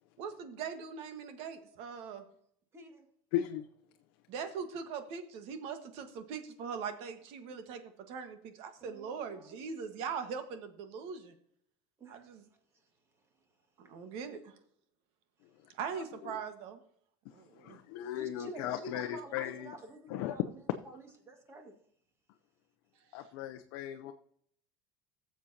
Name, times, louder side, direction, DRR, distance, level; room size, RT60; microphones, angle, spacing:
voice 1, 0.2-2.2 4.3-11.3 12.1-12.4 13.8-14.5 15.7-16.8 17.3-17.8, right 6 dB, 55° right, 8 dB, 1.5 m, -41 dB
voice 2, 2.7-3.1 8.8-9.6 12.0-12.3 18.2-20.6 20.9-21.7, right 1 dB, 20° right, 4 dB, 1.9 m, -49 dB
voice 3, 3.3-3.7 15.6-16.4 17.2-19.7 20.1-20.5 23.1-24.1, left 12 dB, 65° left, 6 dB, 0.7 m, -37 dB
17.5 x 7.3 x 2.8 m, 0.67 s
cardioid pair, 160°, 12 cm